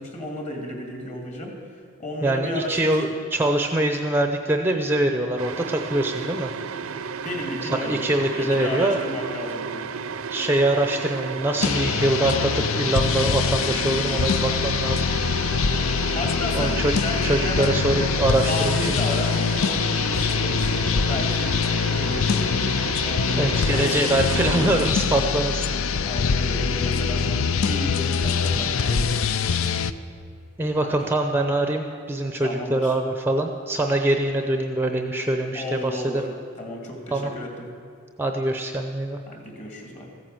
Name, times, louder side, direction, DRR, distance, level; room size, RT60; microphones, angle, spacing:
voice 1, 0.0-1.6 2.0-3.0 7.2-8.0 8.3-9.9 15.4-17.8 18.5-24.2 26.0-29.2 29.5-29.7 30.8-30.9 32.4-33.0 35.5-36.3 36.6-37.7 39.3-40.1, left 1 dB, 35° left, 2 dB, 2.4 m, -33 dB
voice 2, 2.2-6.5 7.6-9.0 10.3-15.1 16.5-16.9 17.2-18.8 23.4-25.6 30.6-36.2 37.1-37.3 38.2-39.2, right 1 dB, 10° right, 5 dB, 0.6 m, -24 dB
sound 1, 5.4-24.9, right 5 dB, 75° right, 0.6 m, -33 dB
sound 2, 11.6-29.9, left 6 dB, 70° left, 0.5 m, -24 dB
15.0 x 9.5 x 7.7 m, 2.5 s
head